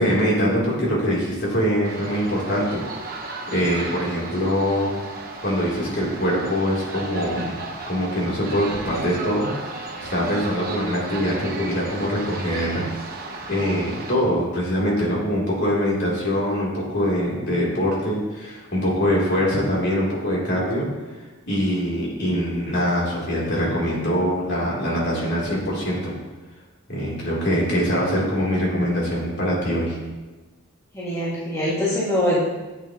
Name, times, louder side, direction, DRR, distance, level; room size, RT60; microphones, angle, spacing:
voice 1, 0.0-2.8 3.1-4.9 5.4-12.9 13.2-20.9 21.5-26.1 26.9-30.0, equal, 55° left, -5 dB, 3.5 m, -23 dB
sound 1, 1.8-14.2, right 3 dB, 45° right, 1.2 m, -35 dB
voice 2, 30.9-32.4, left 1 dB, 15° left, -9 dB, 2.2 m, -23 dB
13.0 x 8.6 x 3.1 m, 1.2 s
head